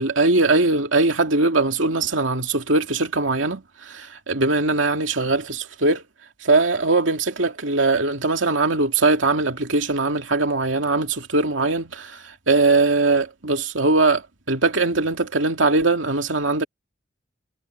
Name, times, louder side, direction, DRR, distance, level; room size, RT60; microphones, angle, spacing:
voice 1, 0.0-6.0 6.4-14.2 14.5-16.6, right 3 dB, 90° right, 2.6 m, -21 dB
head